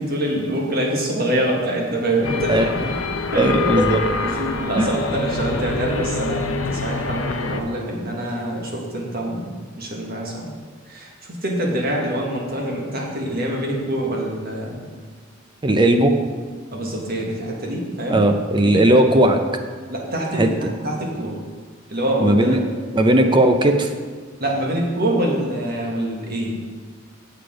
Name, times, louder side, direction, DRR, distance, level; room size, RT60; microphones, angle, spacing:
voice 1, 0.0-2.7 3.3-3.5 3.7-3.9 4.2-10.5 10.9-14.9 16.7-18.2 18.6-19.0 19.9-21.3 21.9-22.6 23.0-23.2 24.4-26.6, right 1 dB, 50° right, -1 dB, 1.6 m, -25 dB
sound 1, 2.2-7.6, left 4 dB, 75° left, 0.7 m, -26 dB
voice 2, 3.4-4.0 4.8-4.9 15.6-16.1 18.1-19.4 20.4-20.5 22.2-22.6 23.0-23.9, right 1 dB, 25° right, 6 dB, 0.5 m, -16 dB
7.9 x 6.7 x 5.0 m, 1.5 s
head